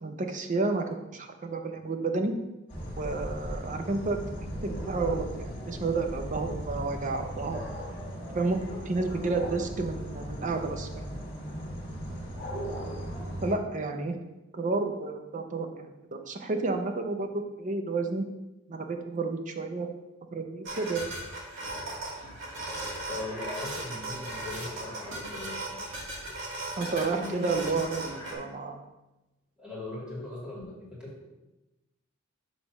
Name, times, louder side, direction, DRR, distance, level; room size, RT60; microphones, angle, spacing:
voice 1, 0.0-0.9 1.1-2.4 3.0-4.2 4.6-7.6 8.3-8.6 8.9-11.2 12.4-12.8 13.4-14.1 14.5-18.2 18.7-19.9 20.3-21.1 26.8-28.8, right 3 dB, 35° right, 5 dB, 0.6 m, -31 dB
sound 1, 2.7-13.5, equal, 25° left, 1.7 m, -37 dB
sound 2, 20.6-28.3, right 1 dB, 60° right, 1.9 m, -37 dB
voice 2, 23.1-25.8 27.1-27.8 29.6-31.3, left 2 dB, 5° right, -7 dB, 2.2 m, -39 dB
6.2 x 3.3 x 5.9 m, 0.99 s
head